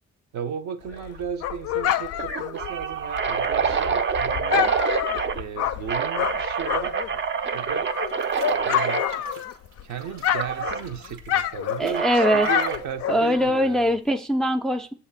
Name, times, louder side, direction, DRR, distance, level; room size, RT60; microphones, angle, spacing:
voice 1, 0.3-4.8 5.4-7.0 7.5-7.9 8.6-9.0 9.3-9.4 9.8-14.0, right 8 dB, 70° right, 0.9 m, -35 dB
Dog, 0.9-7.2 7.5-9.8 10.1-13.5, left 11 dB, 55° left, 0.5 m, -28 dB
sound 1, 0.9-1.2 1.5-1.6 2.2-5.4 5.9-9.1 10.4-10.8 11.9-12.9, right 6 dB, 40° right, 0.6 m, -26 dB
sound 2, 7.9-12.9, right 4 dB, 85° right, 1.3 m, -47 dB
voice 2, 11.8-12.5 13.1-14.9, equal, ahead, 0.4 m, -22 dB
7.2 x 2.8 x 5.6 m
cardioid pair, 90°, 30 cm